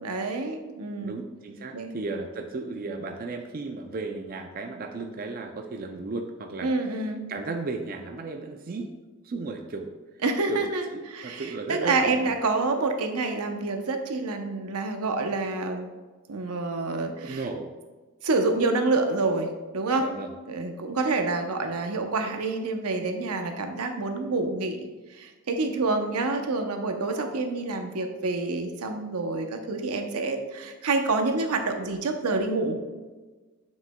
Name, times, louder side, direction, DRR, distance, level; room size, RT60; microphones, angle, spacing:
voice 1, 0.0-1.2 1.7-1.9 6.6-7.2 10.2-15.9 16.3-17.4 18.2-20.1 20.5-24.8 25.2-32.8, right 3 dB, 90° right, 5 dB, 0.7 m, -27 dB
voice 2, 1.0-8.9 9.2-9.9 10.5-10.6 10.9-12.3 17.2-17.7 20.0-20.3, right 3 dB, 40° right, 4 dB, 0.4 m, -35 dB
7.3 x 6.3 x 2.2 m, 1.3 s
head